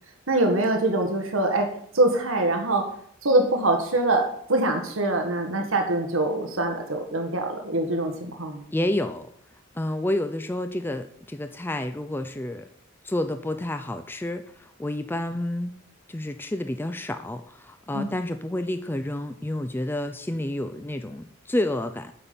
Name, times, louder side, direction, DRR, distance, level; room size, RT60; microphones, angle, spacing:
voice 1, 0.3-1.7 1.9-2.9 3.2-8.6 17.9-18.1, right 2 dB, 75° right, 4 dB, 1.5 m, -24 dB
voice 2, 8.7-9.3 9.7-12.7 13.0-15.8 16.1-22.1, left 1 dB, 10° left, 8 dB, 0.4 m, -29 dB
8.4 x 5.7 x 6.9 m, 0.64 s
head